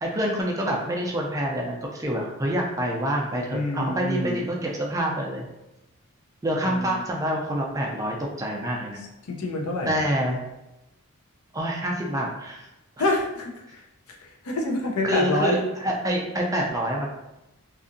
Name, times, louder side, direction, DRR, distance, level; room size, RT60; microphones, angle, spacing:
voice 1, 0.0-5.5 6.4-9.0 9.9-10.4 11.5-12.7 13.0-13.1 15.0-17.1, equal, 15° right, -1 dB, 0.3 m, -27 dB
voice 2, 3.5-4.4 6.6-7.0 9.3-9.9 13.0-13.8 14.2-15.5, left 2 dB, 80° left, 1 dB, 0.5 m, -27 dB
2.7 x 2.4 x 2.5 m, 0.93 s
head